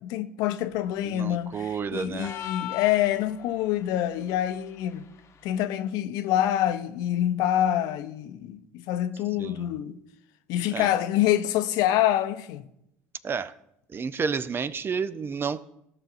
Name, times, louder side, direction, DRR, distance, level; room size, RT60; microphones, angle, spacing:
voice 1, 0.0-5.1 5.4-10.0 10.5-12.6, left 12 dB, 65° left, 0.6 m, -26 dB
voice 2, 1.0-2.4 9.4-9.7 10.7-10.9 13.2-13.5 13.9-15.6, right 6 dB, 30° right, 0.5 m, -31 dB
sound 1, 2.2-3.7, left 12 dB, 40° left, 0.9 m, -37 dB
15.5 x 5.8 x 2.5 m
hypercardioid pair, 65°, 7 cm